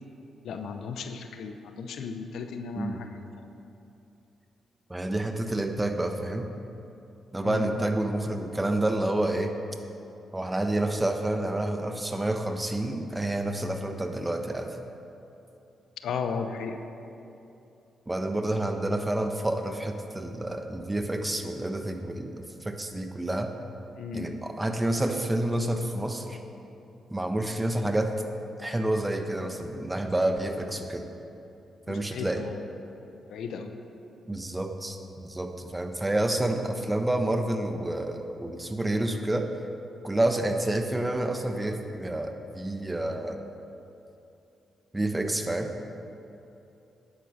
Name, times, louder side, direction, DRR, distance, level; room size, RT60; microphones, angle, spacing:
voice 1, 0.4-3.5 7.4-7.7 16.0-16.8 24.0-24.4 31.9-32.6 33.3-33.7, left 5 dB, 75° left, 6 dB, 0.7 m, -35 dB
voice 2, 4.9-6.4 7.3-9.5 10.3-14.7 18.1-23.5 24.1-26.4 27.1-28.1 28.6-31.0 31.9-32.4 34.3-39.5 40.0-43.4 44.9-45.7, right 1 dB, 15° right, 5 dB, 1.2 m, -29 dB
9.8 x 8.5 x 6.3 m, 2.8 s
supercardioid pair, 50°, 0 cm